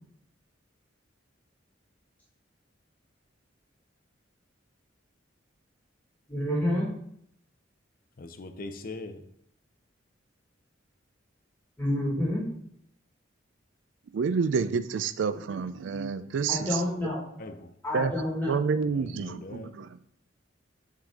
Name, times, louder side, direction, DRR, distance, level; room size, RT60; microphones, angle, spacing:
voice 1, 6.3-6.9 11.8-12.4 16.5-17.2 17.8-18.6, left 1 dB, 10° left, 1.6 m, -28 dB
voice 2, 8.2-9.3 17.4-17.7 18.9-19.7, left 2 dB, 50° left, 0.5 m, -41 dB
voice 3, 14.1-16.8 17.9-18.1 18.5-20.1, right 5 dB, 70° right, 0.4 m, -29 dB
7.3 x 3.8 x 3.6 m
head